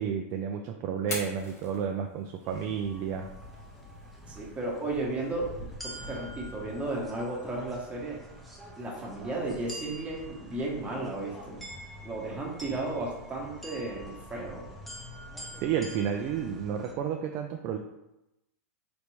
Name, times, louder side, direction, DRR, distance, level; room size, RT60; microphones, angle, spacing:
voice 1, 0.0-3.3 15.6-17.8, right 8 dB, 35° right, 4 dB, 0.3 m, -31 dB
Fire, 0.9-8.9, left 3 dB, 85° left, 1.1 m, -47 dB
sound 1, 2.4-16.9, equal, ahead, 0.7 m, -45 dB
voice 2, 4.3-5.5 5.8-8.2 8.8-11.6 12.0-14.7, right 2 dB, 15° right, -2 dB, 1.0 m, -34 dB
3.9 x 3.3 x 3.1 m, 0.92 s
hypercardioid pair, 135°, 8 cm